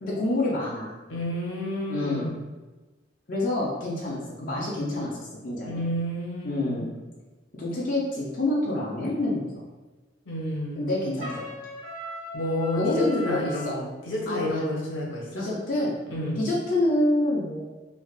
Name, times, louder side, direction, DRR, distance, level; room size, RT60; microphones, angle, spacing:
voice 1, 0.0-1.0 1.9-2.3 3.3-5.8 6.4-6.9 7.6-9.6 10.8-11.5 12.8-13.7 14.3-14.7 15.3-15.9 16.4-17.6, left 1 dB, 45° left, -6 dB, 0.5 m, -27 dB
voice 2, 1.1-2.3 5.6-6.9 10.3-10.9 12.3-15.5 16.1-16.4, left 1 dB, 80° left, -3 dB, 0.8 m, -30 dB
Trumpet, 11.2-13.7, left 2 dB, 75° right, 1.3 m, -38 dB
3.3 x 2.5 x 2.3 m, 1.2 s
head